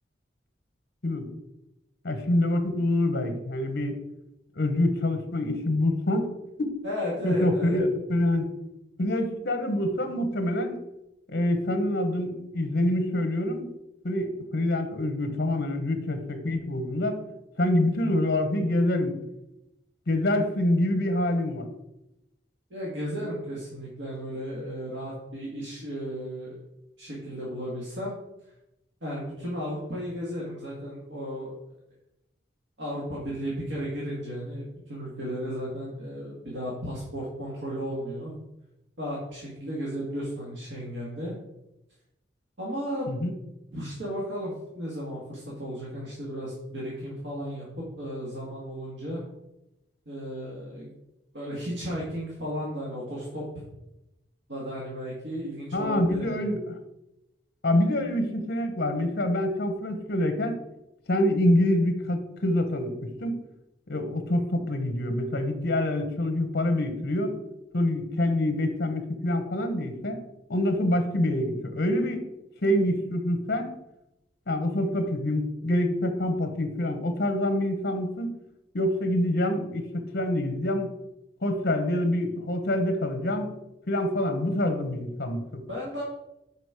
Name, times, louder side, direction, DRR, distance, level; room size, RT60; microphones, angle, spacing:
voice 1, 2.0-4.0 4.5-6.3 6.6-6.7 7.2-8.4 9.0-10.8 11.3-13.7 14.0-17.2 17.6-19.1 20.1-21.7 43.1-43.3 55.7-56.8 57.6-60.6 61.1-63.3 63.9-67.3 67.7-70.2 70.5-72.2 72.6-73.7 74.5-78.3 78.7-80.9 81.4-83.5 83.9-85.6, left 1 dB, 55° left, 7 dB, 1.0 m, -26 dB
voice 2, 6.8-7.8 22.7-26.6 27.0-28.1 29.0-31.5 32.8-38.3 39.0-41.3 42.6-43.1 43.7-49.2 50.0-50.9 51.3-53.4 54.5-56.4 85.7-86.0, equal, 85° right, -5 dB, 1.8 m, -34 dB
6.2 x 5.3 x 4.8 m, 0.90 s
head